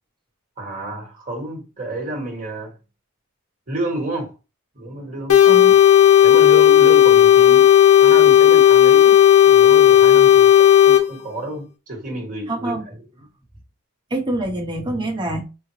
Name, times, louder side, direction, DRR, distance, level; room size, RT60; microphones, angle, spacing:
voice 1, 0.6-2.7 3.7-4.3 4.7-5.4 6.2-7.7 8.0-9.2 9.4-12.8, right 1 dB, 35° right, 1.1 m, -30 dB
sound 1, 5.3-11.0, left 10 dB, 80° left, 0.7 m, -11 dB
voice 2, 12.5-12.8 14.1-15.5, right 1 dB, 20° right, 0.8 m, -25 dB
3.7 x 2.0 x 3.0 m
head